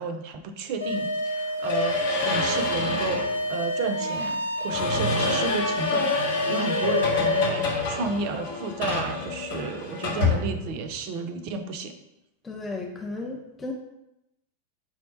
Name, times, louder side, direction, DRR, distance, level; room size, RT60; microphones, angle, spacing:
voice 1, 0.0-6.2 6.5-11.9, right 4 dB, 45° right, 8 dB, 0.4 m, -32 dB
sound 1, 0.8-7.5, equal, 90° left, 0.6 m, -29 dB
sound 2, 1.6-3.3 4.7-11.0, left 4 dB, 55° left, 0.8 m, -27 dB
voice 2, 12.4-13.7, left 2 dB, 15° left, 0 dB, 0.4 m, -34 dB
4.6 x 2.1 x 4.1 m, 0.90 s
figure-of-eight pair, 90°, 0 cm